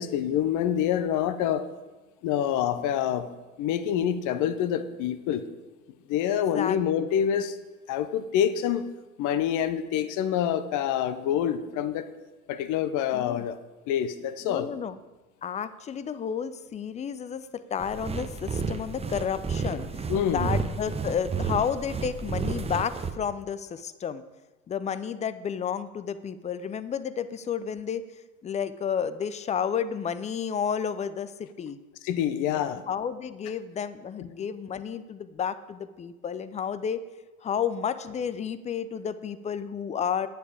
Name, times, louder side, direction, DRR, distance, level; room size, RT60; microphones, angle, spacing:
voice 1, 0.0-1.7 2.2-3.3 3.6-5.4 6.1-7.6 7.9-8.8 9.2-12.1 12.5-13.6 13.9-14.7 20.1-20.5 32.0-32.8 34.2-34.3, left 9 dB, 45° left, 12 dB, 0.9 m, -26 dB
voice 2, 6.5-7.1 13.1-13.5 14.4-15.0 15.4-20.0 20.3-24.2 24.7-28.0 28.4-31.8 32.5-37.0 37.4-40.3, left 7 dB, 15° left, 13 dB, 0.4 m, -31 dB
sound 1, 17.8-23.1, right 4 dB, 15° right, 0.8 m, -31 dB
9.9 x 9.1 x 4.9 m, 1.2 s
figure-of-eight pair, 70°, 43 cm